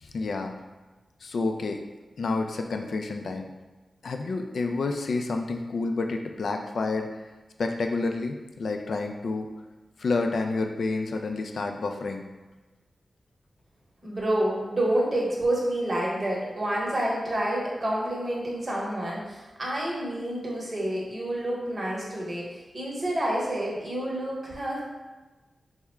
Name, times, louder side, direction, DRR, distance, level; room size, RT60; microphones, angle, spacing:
voice 1, 0.0-0.5 1.2-1.8 2.2-3.5 4.0-7.1 7.6-9.5 10.0-12.2, left 3 dB, 75° left, 4 dB, 0.3 m, -29 dB
voice 2, 14.0-24.8, right 1 dB, 35° right, -4 dB, 0.9 m, -28 dB
3.5 x 2.0 x 4.3 m, 1.2 s
wide cardioid pair, 145°, 0 cm